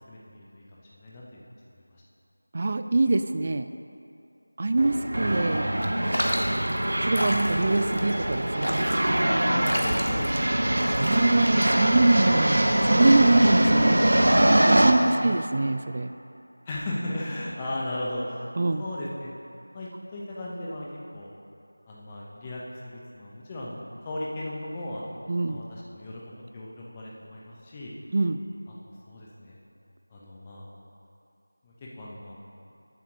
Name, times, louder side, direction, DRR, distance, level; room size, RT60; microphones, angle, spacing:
voice 1, 0.1-1.5 1.9-2.0 9.4-10.5 15.0-15.3 16.7-18.4 18.8-19.3 19.7-20.9 21.1-21.3 21.9-27.9 28.9-29.6 30.1-30.7 31.6-32.4, left 1 dB, 15° left, -5 dB, 1.0 m, -36 dB
voice 2, 2.5-3.7 4.6-5.7 7.0-9.0 11.0-14.0 14.6-16.1 18.6-18.8 25.3-25.6 28.1-28.4, right 2 dB, 35° right, 9 dB, 0.3 m, -24 dB
sound 1, 4.8-14.9, right 1 dB, 65° right, 0.9 m, -23 dB
sound 2, 6.1-12.1, equal, 80° left, 1.5 m, -32 dB
8.1 x 7.3 x 6.2 m, 2.6 s
figure-of-eight pair, 170°, 0 cm